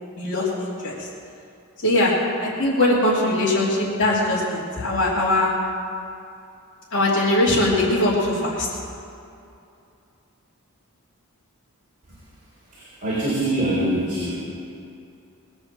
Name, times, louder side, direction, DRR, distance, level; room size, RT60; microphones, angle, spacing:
voice 1, 0.2-0.9 1.8-2.1 2.4-5.5 6.9-8.7, left 1 dB, 55° left, -8 dB, 3.1 m, -21 dB
voice 2, 12.7-14.4, right 1 dB, 35° right, -9 dB, 4.0 m, -24 dB
20.0 x 7.8 x 7.7 m, 2.6 s
head